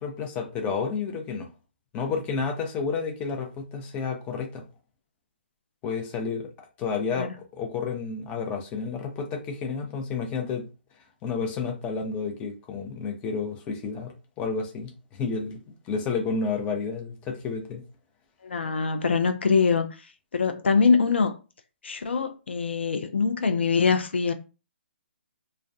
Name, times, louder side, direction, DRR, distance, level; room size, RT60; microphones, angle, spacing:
voice 1, 0.0-1.5 1.9-4.6 5.8-6.5 6.8-10.7 11.2-17.8, left 5 dB, 20° left, 0.5 m, -31 dB
voice 2, 18.4-19.9 20.3-21.3 21.8-24.3, left 5 dB, 75° left, 0.4 m, -23 dB
2.2 x 2.1 x 2.6 m
figure-of-eight pair, 135°, 6 cm